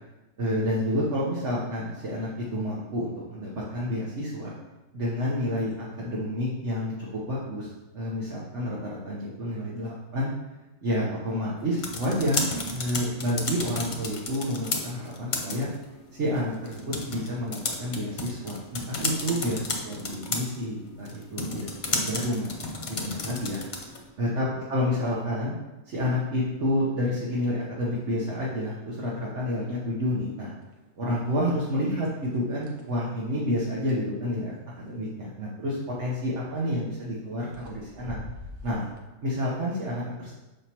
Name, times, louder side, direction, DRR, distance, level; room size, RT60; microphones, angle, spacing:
voice 1, 0.4-4.5 4.9-10.3 10.8-15.7 16.2-23.6 24.2-25.5 25.8-30.5 30.9-38.2 38.6-38.9 39.2-40.3, left 1 dB, 75° right, -6 dB, 1.4 m, -29 dB
sound 1, 11.6-24.1, left 3 dB, 45° left, 0.8 m, -34 dB
sound 2, 30.6-30.8 31.2-31.8 32.2-34.1 36.3-36.6 37.2-37.3 37.5-39.0, equal, 50° right, 0.9 m, -44 dB
6.6 x 5.0 x 2.9 m, 1.1 s
omnidirectional pair, 1.2 m